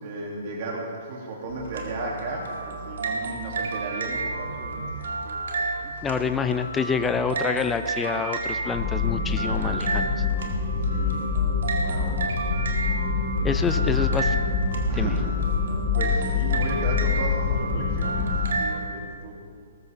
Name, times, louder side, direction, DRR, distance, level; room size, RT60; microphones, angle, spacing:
voice 1, 0.0-4.8 5.2-5.3 7.4-7.5 10.9-11.3 11.8-12.2 13.8-13.9 14.9-15.2 15.9-18.3 18.6-19.3, right 2 dB, 50° right, -2 dB, 2.7 m, -34 dB
sound 1, 1.5-18.8, right 3 dB, 70° right, 2.2 m, -32 dB
voice 2, 6.0-10.1 13.4-14.4 14.9-15.2, left 5 dB, 15° left, 8 dB, 0.6 m, -27 dB
sound 2, 8.7-18.5, left 5 dB, 45° left, 2.1 m, -26 dB
19.0 x 14.5 x 3.5 m, 2.2 s
hypercardioid pair, 130°, 0 cm